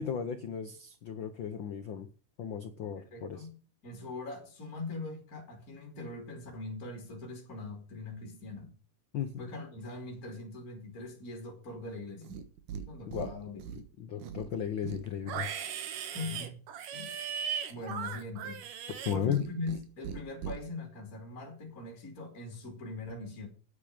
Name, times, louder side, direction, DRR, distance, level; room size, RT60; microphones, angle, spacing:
voice 1, 0.0-2.1 2.4-3.5 9.1-9.5 13.1-13.3 14.0-15.5 19.0-19.4, left 8 dB, 80° left, 1.1 m, -35 dB
voice 2, 3.0-3.6 3.8-8.8 9.4-12.4 12.9-13.6 16.1-16.6 16.9-17.1 17.7-18.6 19.1-23.5, left 3 dB, 25° left, 3.3 m, -41 dB
Livestock farm animals working animals, 12.2-12.8 13.1-13.8 14.2-19.8 20.0-20.6, right 8 dB, 75° right, 3.0 m, -38 dB
9.3 x 8.4 x 8.9 m
omnidirectional pair, 3.7 m